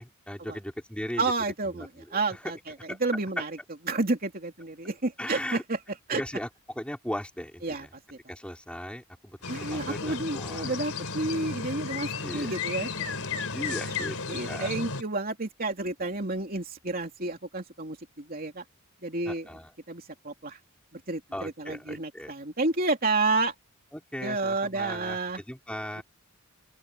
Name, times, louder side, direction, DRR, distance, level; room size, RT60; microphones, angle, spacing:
voice 1, 0.0-1.3 1.7-2.4 2.9-3.0 3.4-3.5 5.2-5.6 6.1-6.5 6.8-7.9 8.3-10.7 12.2-12.5 13.2-14.2 14.5-14.7 19.3-19.7 21.3-22.3 23.9-26.0, equal, 5° left, 5.2 m, -38 dB
voice 2, 1.2-2.7 3.0-3.6 3.9-5.8 6.1-6.2 7.6-8.2 9.5-13.5 13.8-18.6 19.0-19.5 19.9-20.6 20.9-23.5 24.2-25.4, right 3 dB, 40° right, 3.1 m, -30 dB
sound 1, 9.4-15.0, left 4 dB, 70° left, 4.1 m, -34 dB
open air
head